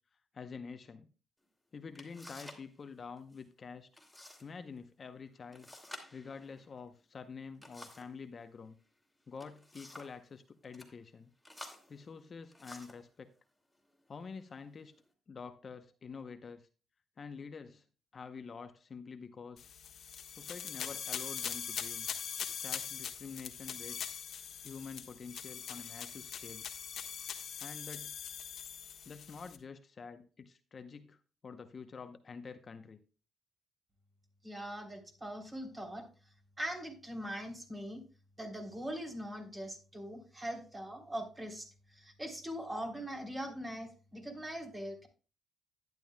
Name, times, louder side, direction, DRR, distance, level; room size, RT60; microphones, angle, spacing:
voice 1, 0.3-1.1 1.7-3.9 4.4-5.7 6.1-8.8 9.3-11.3 11.9-13.3 14.1-14.9 15.3-16.7 17.2-17.8 18.1-19.7 20.3-22.1 22.6-24.2 24.6-26.7 27.6-28.2 29.1-33.0, left 5 dB, 40° left, 8 dB, 0.8 m, -47 dB
sound 1, 1.4-1.5 1.9-2.7 3.0-3.4 3.9-4.5 4.8-4.9 5.5-8.2 9.2-10.2 10.6-10.9 11.4-13.1 13.8-14.0 14.6-15.1, left 1 dB, 5° left, 2.7 m, -52 dB
sound 2, 19.6-29.6, left 8 dB, 65° left, 1.3 m, -42 dB
voice 2, 34.4-36.1 36.6-38.0 38.4-41.7 41.9-45.1, equal, 20° right, 2 dB, 3.4 m, -41 dB
11.5 x 10.5 x 2.3 m, 0.34 s
cardioid pair, 90°, 0 cm